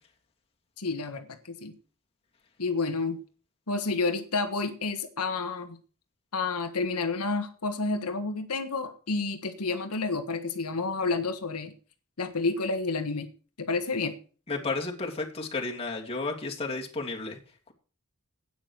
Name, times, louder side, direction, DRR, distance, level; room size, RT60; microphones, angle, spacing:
voice 1, 0.8-1.7 2.6-3.2 3.7-5.8 6.3-11.7 12.2-13.3 13.6-14.1, left 3 dB, 85° left, 6 dB, 1.5 m, -30 dB
voice 2, 14.5-17.4, left 3 dB, 25° left, 0 dB, 2.8 m, -32 dB
12.0 x 9.1 x 6.5 m, 0.39 s
head